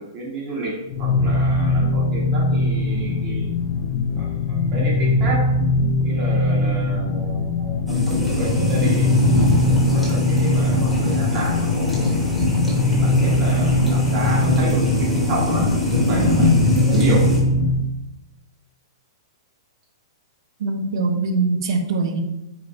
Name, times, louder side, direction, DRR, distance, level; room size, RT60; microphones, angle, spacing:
voice 1, 0.0-3.5 4.2-5.5 6.0-12.1 12.7-17.3, right 2 dB, 40° right, -4 dB, 1.4 m, -31 dB
sound 1, 0.9-17.9, left 2 dB, 30° left, 0.3 m, -21 dB
sound 2, 7.8-17.4, left 1 dB, 5° right, 1.2 m, -22 dB
voice 2, 20.6-22.2, right 4 dB, 65° right, 5 dB, 0.7 m, -22 dB
4.8 x 2.5 x 3.1 m, 0.94 s
hypercardioid pair, 140°, 3 cm